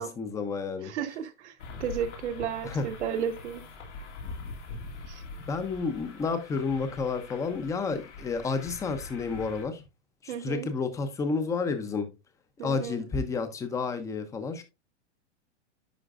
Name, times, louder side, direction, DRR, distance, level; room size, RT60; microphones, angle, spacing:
voice 1, 0.0-0.9 2.6-2.9 5.5-9.8 10.2-12.1 12.6-14.6, left 4 dB, 10° left, 0.5 m, -31 dB
voice 2, 0.8-1.5 1.8-3.6 5.1-5.2 10.3-10.7 12.6-13.0, right 8 dB, 75° right, 1.2 m, -33 dB
sound 1, 1.6-9.6, left 3 dB, 85° left, 2.3 m, -43 dB
10.0 x 4.4 x 2.4 m
supercardioid pair, 155°, 35 cm